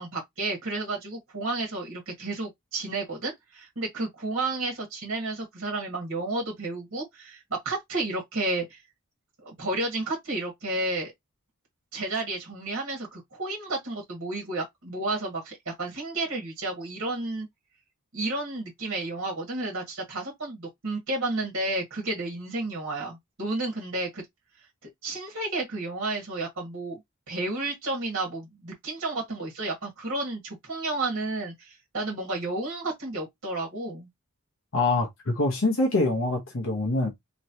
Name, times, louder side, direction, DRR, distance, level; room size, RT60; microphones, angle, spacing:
voice 1, 0.0-8.8 9.4-11.1 11.9-17.5 18.1-24.2 24.8-27.0 27.3-34.1, right 2 dB, 60° right, 1.5 m, -31 dB
voice 2, 34.7-37.1, left 2 dB, 60° left, 0.9 m, -25 dB
3.1 x 3.0 x 2.7 m
head